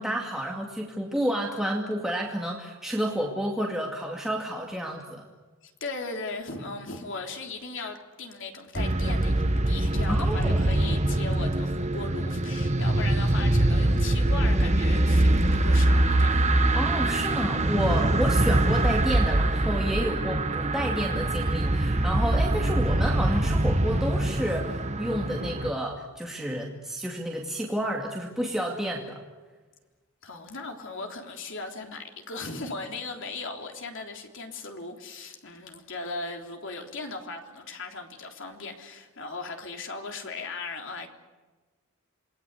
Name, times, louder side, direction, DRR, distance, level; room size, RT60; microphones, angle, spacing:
voice 1, 0.0-5.2 10.1-10.6 16.7-29.2, equal, ahead, -1 dB, 2.4 m, -30 dB
voice 2, 5.6-16.5 30.2-41.1, left 3 dB, 60° left, 3 dB, 3.5 m, -38 dB
sound 1, 8.8-25.7, right 1 dB, 30° right, 1.2 m, -23 dB
28.0 x 20.5 x 8.4 m, 1.3 s
head